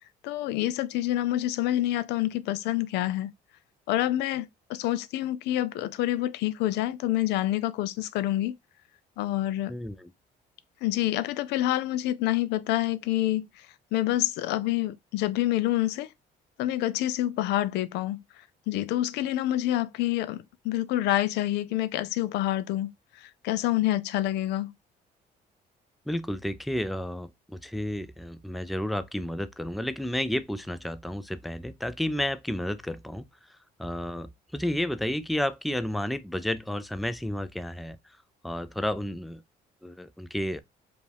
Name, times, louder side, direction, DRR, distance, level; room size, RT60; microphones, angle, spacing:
voice 1, 0.2-3.3 3.9-8.5 9.2-9.7 10.8-16.1 16.6-18.2 18.7-24.7, left 14 dB, 85° left, 0.4 m, -27 dB
voice 2, 9.7-10.1 26.1-33.3 33.8-38.0 38.4-39.4 39.8-40.6, left 1 dB, ahead, 0.3 m, -31 dB
5.0 x 2.4 x 3.3 m
cardioid pair, 110°, 17 cm